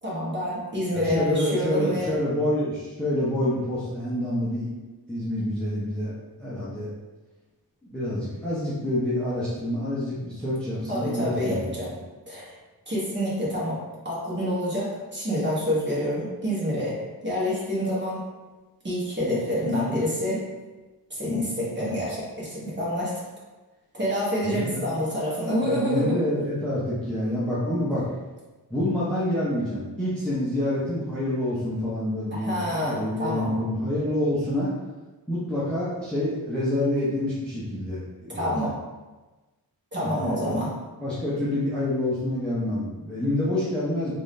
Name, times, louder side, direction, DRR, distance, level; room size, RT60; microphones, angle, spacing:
voice 1, 0.0-2.1 10.9-11.9 12.3-12.5 12.9-13.8 14.0-17.0 17.2-18.2 18.8-20.4 21.1-23.1 23.9-26.2 32.3-33.5 38.3-38.7 39.9-40.7, equal, 25° right, -7 dB, 1.3 m, -27 dB
voice 2, 0.9-4.7 5.1-6.1 6.4-6.9 7.8-11.8 24.4-24.8 25.6-28.1 28.7-34.7 35.3-38.7 40.0-40.6 41.0-44.1, left 1 dB, ahead, -9 dB, 0.7 m, -27 dB
3.5 x 2.6 x 3.2 m, 1.2 s
wide cardioid pair, 110°, 40 cm